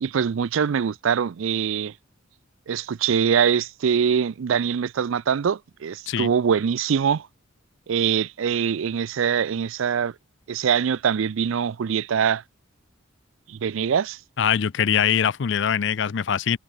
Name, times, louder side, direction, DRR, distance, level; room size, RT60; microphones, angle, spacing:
voice 1, 0.0-1.9 2.7-7.3 7.9-10.1 10.5-12.4 13.5-14.2, right 7 dB, 70° right, 0.4 m, -23 dB
voice 2, 14.4-16.6, left 8 dB, 60° left, 0.4 m, -22 dB
head